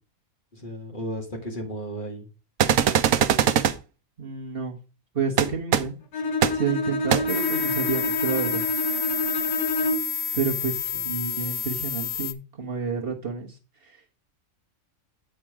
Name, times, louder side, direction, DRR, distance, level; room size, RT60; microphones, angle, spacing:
voice 1, 0.5-2.3 10.7-11.1, equal, 35° left, 1 dB, 2.1 m, -35 dB
sound 1, 2.6-3.7 5.4-5.5 5.7-5.8 6.4-6.5 7.1-7.2, right 9 dB, 70° right, 1.1 m, -20 dB
voice 2, 4.2-4.8 5.1-5.9 6.5-8.6 10.3-13.6 13.8-14.0, right 5 dB, 45° right, 0 dB, 1.5 m, -29 dB
Bowed string instrument, 6.1-10.2, left 1 dB, 85° left, 1.5 m, -28 dB
sound 2, 7.3-12.3, left 7 dB, 50° left, 0.4 m, -29 dB
9.2 x 4.5 x 4.9 m, 0.32 s
omnidirectional pair, 1.5 m